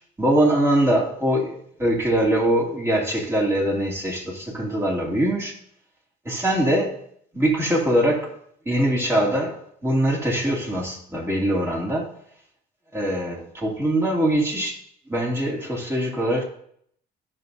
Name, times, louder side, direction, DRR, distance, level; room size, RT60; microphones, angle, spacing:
voice 1, 0.2-5.6 6.2-6.9 7.3-8.3 8.7-12.1 12.9-14.8 15.1-16.4, right 1 dB, 15° right, -2 dB, 2.8 m, -22 dB
15.0 x 6.1 x 2.7 m, 0.66 s
cardioid pair, 110°, 17 cm